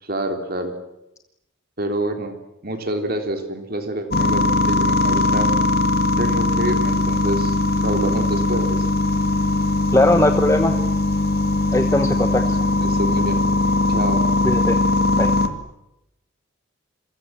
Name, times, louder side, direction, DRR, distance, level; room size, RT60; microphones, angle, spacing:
voice 1, 0.0-0.7 1.8-2.3 2.6-5.5 6.2-7.6 7.8-8.9 12.8-13.5 13.9-14.3, right 1 dB, 45° right, 6 dB, 3.6 m, -27 dB
sound 1, 4.1-15.5, left 2 dB, 50° left, 2.0 m, -20 dB
voice 2, 9.9-10.7 11.7-12.4 14.4-14.8 15.1-15.3, left 1 dB, 15° left, 7 dB, 1.0 m, -19 dB
28.0 x 23.5 x 7.6 m, 0.88 s
head